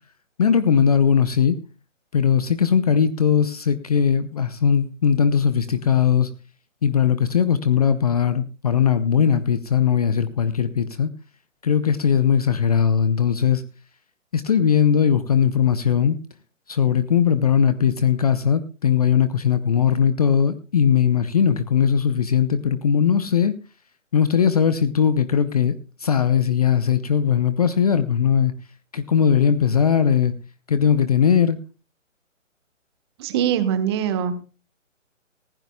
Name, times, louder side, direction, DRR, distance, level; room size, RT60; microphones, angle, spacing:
voice 1, 0.4-1.6 2.1-6.3 6.8-11.1 11.6-13.6 14.3-16.2 16.7-23.5 24.1-28.5 28.9-30.3 30.7-31.6, left 7 dB, 30° left, 13 dB, 0.6 m, -19 dB
voice 2, 33.2-34.4, right 9 dB, 20° right, 11 dB, 1.1 m, -22 dB
19.0 x 15.5 x 2.2 m, 0.33 s
figure-of-eight pair, 145°, 39 cm